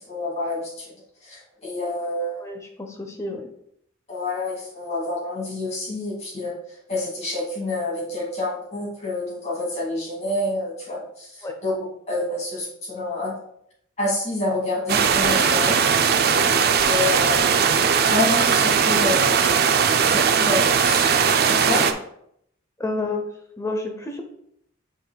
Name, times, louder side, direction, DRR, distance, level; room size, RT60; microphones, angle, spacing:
voice 1, 0.1-0.9 1.2-2.5 4.1-6.6 6.9-13.4 14.0-15.8 16.8-17.7 18.1-19.3 20.0-21.1 21.5-21.8, left 2 dB, 35° left, -5 dB, 2.2 m, -28 dB
voice 2, 2.4-3.5 11.4-11.5 21.7-21.9 22.8-23.2 23.6-24.2, left 2 dB, 15° left, 3 dB, 0.7 m, -30 dB
sound 1, 14.9-21.9, right 6 dB, 50° right, 0.4 m, -19 dB
7.9 x 5.4 x 2.3 m, 0.73 s
head